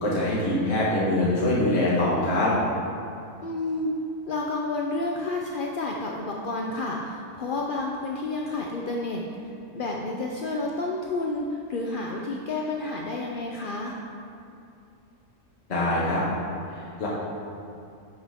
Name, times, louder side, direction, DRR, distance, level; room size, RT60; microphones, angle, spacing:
voice 1, 0.0-2.5 15.7-16.2 16.7-17.1, left 1 dB, 45° left, -7 dB, 1.6 m, -24 dB
voice 2, 3.4-3.9 4.3-14.0, left 2 dB, 65° left, -1 dB, 0.5 m, -30 dB
11.5 x 6.0 x 3.5 m, 2.6 s
omnidirectional pair, 1.6 m